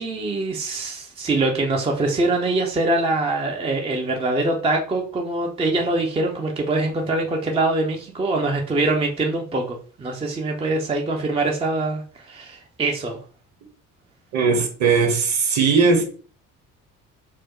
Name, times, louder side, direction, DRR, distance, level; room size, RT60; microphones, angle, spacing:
voice 1, 0.0-13.2, right 2 dB, 15° right, 0.5 m, -23 dB
voice 2, 14.3-16.1, right 5 dB, 40° right, 1.0 m, -19 dB
4.5 x 2.1 x 3.0 m
figure-of-eight pair, 55°, 45 cm